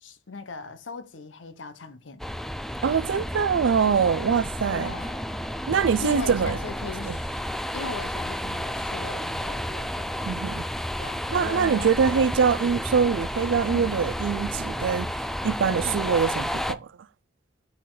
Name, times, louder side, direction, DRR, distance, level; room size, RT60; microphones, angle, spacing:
voice 1, 0.0-2.3 4.7-5.4 6.0-7.4 7.7-10.2 11.0-12.2 13.7-13.9 15.8-16.1, left 4 dB, 90° left, 0.8 m, -39 dB
sound 1, 2.2-16.7, equal, ahead, 0.3 m, -31 dB
voice 2, 2.8-4.9 5.7-6.6 7.0-7.2 10.3-10.7 11.3-16.9, right 6 dB, 85° right, 0.4 m, -24 dB
6.6 x 4.2 x 3.8 m
head